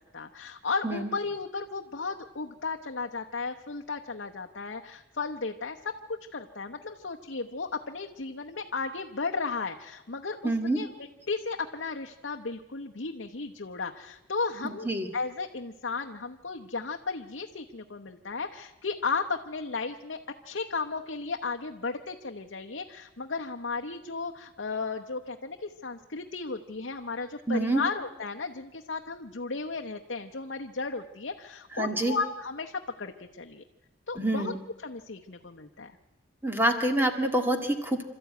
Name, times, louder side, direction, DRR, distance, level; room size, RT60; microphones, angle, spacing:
voice 1, 0.1-33.6 34.1-34.5 34.8-35.9, left 4 dB, 65° left, 3 dB, 0.9 m, -35 dB
voice 2, 10.4-10.8 14.8-15.1 27.5-27.8 31.8-32.2 34.2-34.6 36.4-38.0, right 1 dB, 10° right, 5 dB, 1.9 m, -26 dB
27.0 x 13.0 x 9.3 m, 1.1 s
head